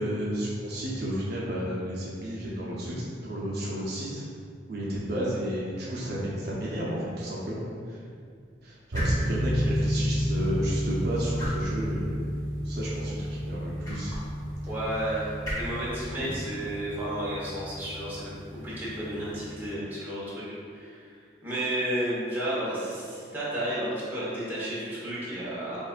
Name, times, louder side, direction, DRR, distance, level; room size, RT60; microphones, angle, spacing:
voice 1, 0.0-2.9 3.2-4.2 4.7-8.0 8.6-12.2 12.6-14.1, equal, 55° right, -6 dB, 0.7 m, -32 dB
sound 1, 6.0-19.5, equal, 20° left, 1.1 m, -43 dB
sound 2, 8.9-19.7, equal, 90° right, 0.8 m, -31 dB
voice 2, 14.7-15.2 15.5-18.4 18.6-21.1 21.4-25.8, right 1 dB, 10° right, -10 dB, 1.1 m, -32 dB
7.2 x 2.5 x 2.4 m, 2.2 s
head